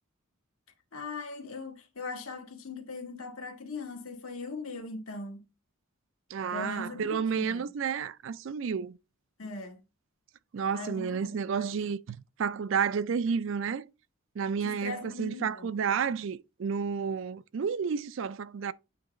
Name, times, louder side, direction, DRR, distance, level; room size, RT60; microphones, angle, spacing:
voice 1, 0.9-5.4 6.5-7.6 9.4-9.8 10.7-11.2 11.5-11.7 14.6-15.7, left 3 dB, 70° left, 1.6 m, -40 dB
voice 2, 6.3-9.0 10.5-13.9 14.4-18.7, right 6 dB, 60° right, 0.4 m, -31 dB
8.4 x 2.9 x 5.0 m
head